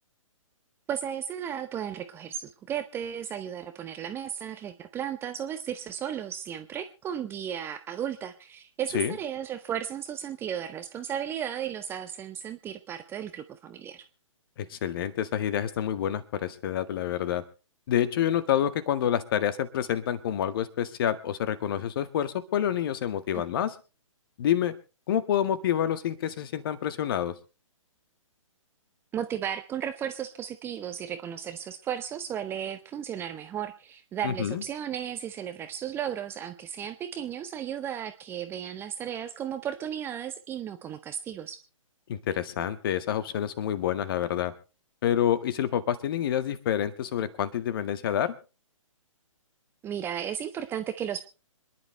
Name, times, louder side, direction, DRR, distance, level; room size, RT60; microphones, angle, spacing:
voice 1, 0.9-14.0 23.3-23.4 29.1-41.6 49.8-51.2, right 9 dB, 15° right, 10 dB, 0.7 m, -34 dB
voice 2, 14.6-17.4 17.9-23.7 24.4-24.7 25.1-27.3 34.2-34.6 42.1-44.5 45.0-48.3, left 10 dB, 40° left, 12 dB, 1.6 m, -28 dB
26.5 x 11.0 x 3.2 m, 0.34 s
figure-of-eight pair, 130°, 17 cm